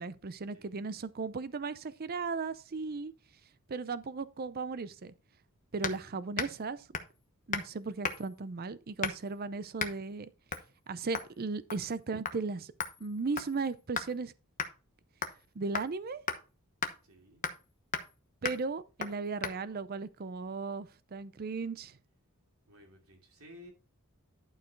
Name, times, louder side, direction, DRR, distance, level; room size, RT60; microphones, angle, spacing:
voice 1, 0.0-3.1 3.7-5.1 5.7-6.8 7.5-10.3 10.9-12.7 13.0-14.3 15.6-16.2 18.4-21.9, right 4 dB, 45° right, 0.5 m, -36 dB
sound 1, 5.8-6.0 6.3-6.6 6.9-7.2 7.5-7.7 8.0-8.4 9.0-9.3 9.8-10.0 10.5-10.7 11.1-11.3 11.7-12.0 12.2-12.4 12.8-14.1 14.6-14.7 15.2-15.4 15.7-15.9 16.3-16.4 16.8-16.9 17.4-17.6 17.9-18.1 18.4-18.6 19.0-19.1 19.4-19.6, left 5 dB, 35° left, 1.0 m, -36 dB
voice 2, 5.9-6.2 17.0-17.4 22.7-23.7, left 1 dB, 75° right, 2.9 m, -55 dB
11.5 x 4.8 x 4.6 m
head